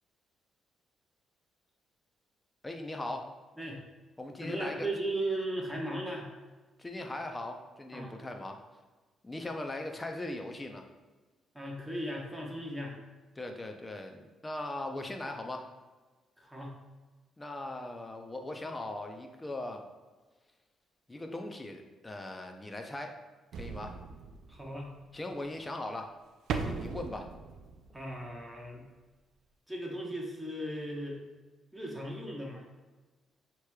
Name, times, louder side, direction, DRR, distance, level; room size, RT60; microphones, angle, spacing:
voice 1, 2.6-3.3 4.2-4.9 6.8-8.6 9.2-10.8 13.4-15.7 17.4-19.8 21.1-23.2 23.6-24.0 25.1-26.1 26.6-27.3, left 2 dB, 20° left, 4 dB, 0.6 m, -39 dB
voice 2, 4.4-6.3 7.9-8.1 11.5-12.9 16.4-16.7 24.5-24.9 27.9-28.8 29.7-31.2 31.7-32.6, right 1 dB, 5° right, -2 dB, 1.1 m, -37 dB
sound 1, 23.5-25.0 26.5-28.4 28.8-28.9, right 5 dB, 75° right, 0.4 m, -38 dB
6.4 x 3.0 x 2.3 m, 1.3 s
cardioid pair, 90°, 0 cm